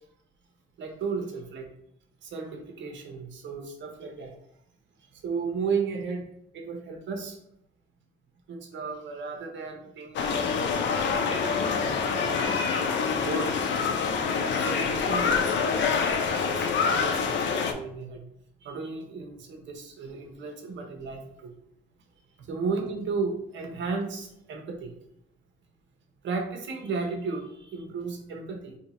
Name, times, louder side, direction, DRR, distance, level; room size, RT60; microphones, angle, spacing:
voice 1, 0.8-1.7 2.2-4.3 5.1-6.3 6.5-7.4 8.5-11.0 11.6-13.6 14.4-18.2 18.6-21.5 22.4-24.9 26.2-28.8, right 4 dB, 70° right, 3 dB, 0.9 m, -34 dB
sound 1, 10.1-17.7, left 5 dB, 65° left, 0.5 m, -26 dB
2.8 x 2.8 x 4.2 m, 0.74 s
cardioid pair, 90°, 20 cm